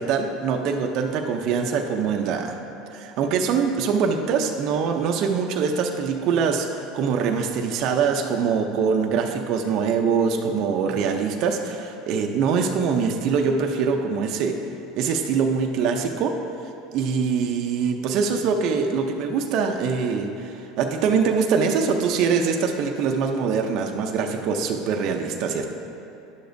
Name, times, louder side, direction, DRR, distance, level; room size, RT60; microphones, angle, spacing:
voice 1, 0.0-2.6 2.9-14.6 15.0-16.4 16.9-25.6, right 5 dB, 55° right, 3 dB, 0.5 m, -23 dB
11.0 x 6.8 x 2.6 m, 2.9 s
supercardioid pair, 125°, 0 cm